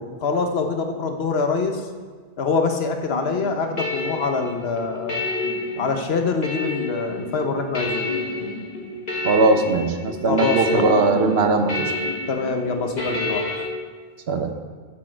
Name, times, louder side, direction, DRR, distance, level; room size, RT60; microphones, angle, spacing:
voice 1, 0.2-1.8 2.4-5.2 5.8-8.1 10.3-10.9 12.3-13.5, left 4 dB, 80° left, 5 dB, 1.1 m, -24 dB
sound 1, 3.1-13.6, left 2 dB, 45° left, 1.6 m, -29 dB
voice 2, 9.2-11.7 14.3-14.5, right 3 dB, 80° right, 6 dB, 1.2 m, -19 dB
13.5 x 6.3 x 4.5 m, 1.5 s
omnidirectional pair, 1.0 m